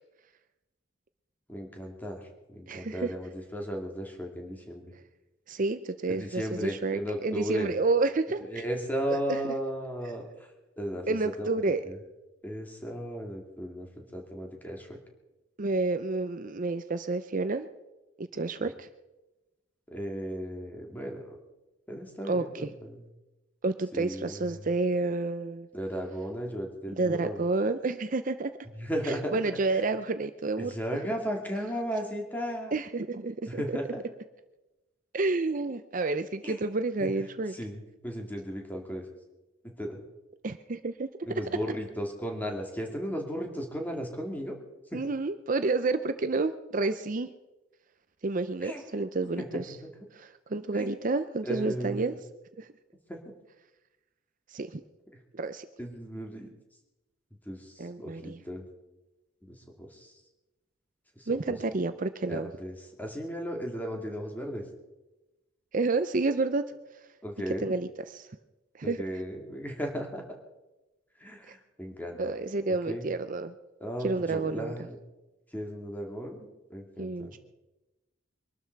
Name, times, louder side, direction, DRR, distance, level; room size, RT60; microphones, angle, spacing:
voice 1, 1.5-2.2 2.5-4.8 6.1-7.7 8.5-10.3 10.8-11.1 11.4-11.5 11.9-12.0 12.4-13.9 14.1-15.0 19.9-21.3 21.9-23.0 23.9-24.4 25.7-27.4 28.8-29.3 30.6-32.7 33.6-34.0 36.4-36.6 37.0-37.1 37.6-37.8 38.0-39.0 39.8-40.0 41.3-44.5 44.9-45.0 48.6-48.8 49.4-49.5 50.8-50.9 51.4-52.2 53.1-53.2 55.8-56.5 57.5-57.6 58.0-58.7 59.4-59.6 62.3-62.7 63.0-64.6 67.2-67.7 68.8-70.2 71.2-71.4 71.8-72.3 72.9-73.0 73.8-74.9 75.5-76.4 76.7-77.4, equal, 10° left, 1 dB, 2.5 m, -35 dB
voice 2, 2.7-3.1 5.5-8.6 9.1-9.4 10.0-10.1 11.1-11.9 15.6-17.7 18.2-18.9 22.2-22.7 23.6-25.7 27.0-28.5 29.0-31.0 32.7-33.8 35.1-37.6 40.4-41.1 44.9-47.3 48.2-49.8 50.1-52.1 52.6-52.7 54.5-54.8 55.3-55.7 57.8-58.4 61.3-62.5 65.7-66.6 67.5-68.3 68.7-69.0 71.5-71.6 72.2-73.5 74.0-74.7 77.0-77.4, right 3 dB, 45° right, 10 dB, 0.6 m, -30 dB
23.0 x 12.5 x 4.7 m, 1.0 s
head